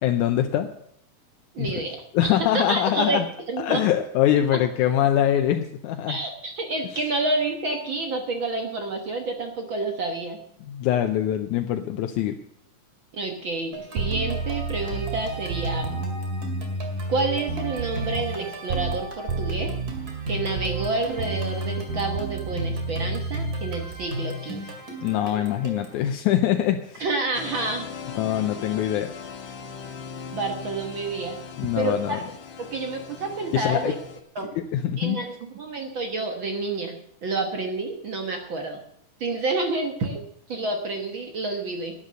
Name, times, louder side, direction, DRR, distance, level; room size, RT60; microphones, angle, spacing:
voice 1, 0.0-0.7 1.6-1.7 2.1-3.3 3.6-6.2 6.9-7.0 10.6-12.4 25.0-27.1 28.2-29.1 31.6-32.2 33.5-33.9 34.6-35.2, left 11 dB, 80° left, 6 dB, 2.1 m, -23 dB
voice 2, 1.5-2.0 2.4-3.8 4.5-4.6 6.1-10.4 13.1-16.0 17.1-19.7 20.3-24.8 27.0-27.9 30.3-31.4 31.8-32.2 32.6-34.0 34.3-34.5 35.0-38.8 39.2-41.9, right 3 dB, 55° right, 4 dB, 1.5 m, -29 dB
sound 1, 13.7-26.0, equal, 30° right, 2.5 m, -36 dB
sound 2, 14.0-19.0 19.3-24.1, right 3 dB, 90° right, 3.7 m, -31 dB
sound 3, 27.3-34.2, left 6 dB, 60° left, 2.2 m, -39 dB
11.5 x 9.8 x 6.6 m, 0.72 s
omnidirectional pair, 3.6 m